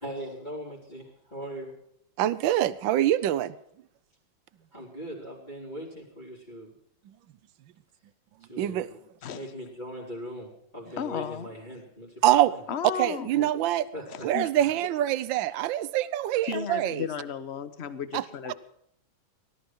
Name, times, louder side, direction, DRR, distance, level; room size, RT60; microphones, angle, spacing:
voice 1, 0.0-1.7 4.7-6.7 8.4-9.0 9.3-12.6 13.9-14.3 14.6-14.8, equal, 20° left, -6 dB, 4.7 m, -40 dB
voice 2, 2.2-3.5 8.6-8.9 12.2-12.5 13.0-13.8 14.2-17.1 18.1-18.2, right 13 dB, 75° right, 15 dB, 1.5 m, -25 dB
voice 3, 11.0-11.5 12.7-13.5 14.1-14.5 16.4-18.7, left 7 dB, 40° left, 13 dB, 1.1 m, -34 dB
19.5 x 12.5 x 4.7 m, 0.70 s
omnidirectional pair, 2.2 m